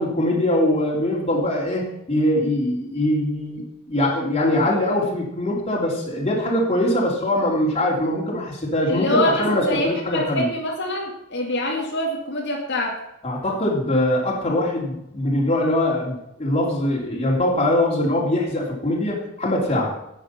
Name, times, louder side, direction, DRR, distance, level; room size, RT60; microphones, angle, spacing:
voice 1, 0.0-3.6 3.9-10.5 13.2-19.9, left 1 dB, 30° left, -4 dB, 3.1 m, -22 dB
voice 2, 8.9-13.0, left 1 dB, 55° left, -1 dB, 2.1 m, -25 dB
10.5 x 9.1 x 5.8 m, 0.83 s
head